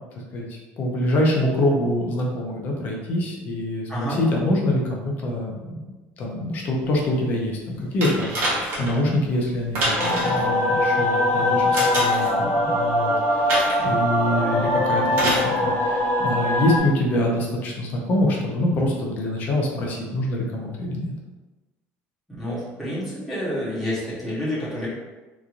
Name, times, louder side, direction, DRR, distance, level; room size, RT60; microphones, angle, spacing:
voice 1, 0.3-5.5 6.2-21.1, left 1 dB, 35° left, -1 dB, 0.5 m, -25 dB
voice 2, 3.9-4.2 22.3-24.9, equal, ahead, -10 dB, 1.0 m, -28 dB
sound 1, 8.0-9.0 9.7-10.4 11.7-12.3 13.5-13.9 15.1-15.5 16.5-16.6, right 1 dB, 50° right, 0.9 m, -26 dB
sound 2, 10.0-16.8, left 1 dB, 80° left, 0.9 m, -22 dB
3.0 x 2.5 x 2.4 m, 1.2 s
cardioid pair, 180°, 5 cm